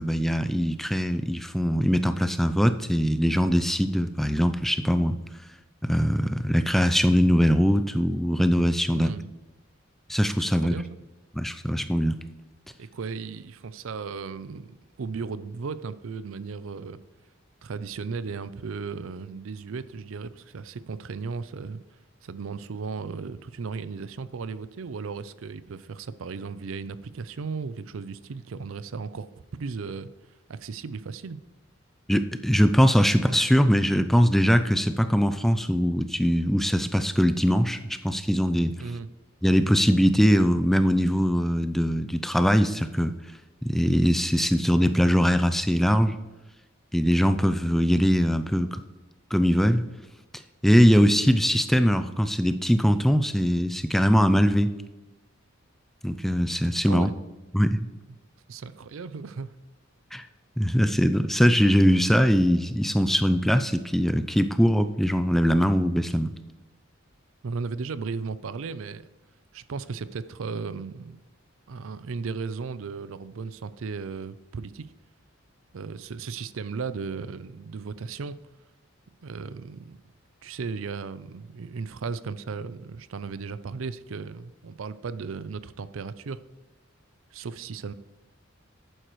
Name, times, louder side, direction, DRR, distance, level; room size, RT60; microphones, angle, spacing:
voice 1, 0.0-5.2 5.8-9.1 10.1-10.8 11.3-12.2 32.1-38.8 39.4-43.2 43.6-46.1 46.9-48.8 49.3-49.8 50.6-54.7 56.0-57.1 57.5-57.9 60.1-60.3 60.6-66.3, equal, ahead, 10 dB, 0.3 m, -22 dB
voice 2, 8.9-9.3 10.4-10.9 12.8-17.0 17.6-21.8 22.2-29.3 29.6-30.1 30.5-31.4 38.8-39.1 56.8-57.1 58.5-59.5 67.4-69.0 69.5-71.2 71.7-74.9 75.7-78.4 79.2-80.0 80.4-86.4 87.3-87.9, right 5 dB, 80° right, 15 dB, 0.5 m, -35 dB
11.0 x 8.9 x 3.1 m, 1.1 s
head